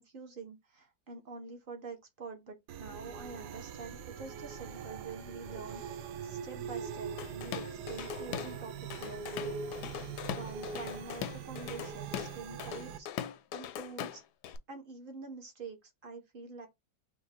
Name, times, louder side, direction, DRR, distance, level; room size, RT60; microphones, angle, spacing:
voice 1, 0.0-9.9 10.3-14.2 14.7-16.7, right 4 dB, 40° right, 0.8 m, -46 dB
sound 1, 2.7-13.0, right 6 dB, 70° right, 1.1 m, -42 dB
Drum kit / Drum, 7.2-8.6 8.9-14.6, left 10 dB, 70° left, 1.0 m, -40 dB
3.7 x 3.0 x 4.2 m
omnidirectional pair, 2.0 m